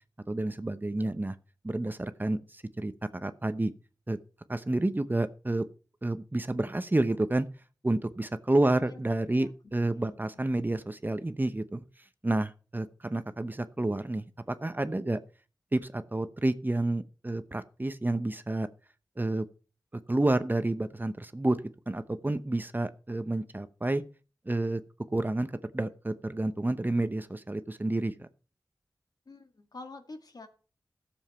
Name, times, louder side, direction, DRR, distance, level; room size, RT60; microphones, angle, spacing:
voice 1, 0.3-1.3 1.6-3.7 4.1-4.2 4.5-5.6 6.0-7.5 7.8-11.8 12.2-15.2 15.7-18.7 19.2-19.4 20.1-21.6 21.9-24.0 24.5-24.8 25.1-28.3, right 2 dB, 25° right, 12 dB, 0.9 m, -29 dB
voice 2, 8.6-9.0 9.3-9.5 9.9-10.2 29.3-30.5, left 3 dB, 65° left, 6 dB, 1.8 m, -47 dB
13.5 x 7.3 x 5.7 m, 0.37 s
wide cardioid pair, 55°, 7 cm